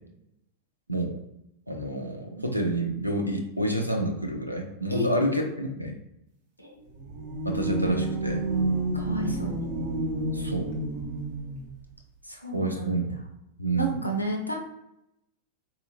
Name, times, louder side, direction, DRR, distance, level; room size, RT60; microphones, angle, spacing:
voice 1, 1.7-5.9 7.4-8.4 10.3-10.7 12.5-13.2 13.6-13.9, right 1 dB, 90° right, 3 dB, 0.5 m, -28 dB
voice 2, 4.9-5.5 6.6-6.8 8.9-9.6 12.3-13.0 13.7-14.5, equal, 90° left, 2 dB, 0.7 m, -31 dB
sound 1, 6.9-11.7, right 2 dB, 60° right, 1.0 m, -29 dB
4.2 x 2.7 x 2.6 m, 0.82 s
figure-of-eight pair, 90°, 0 cm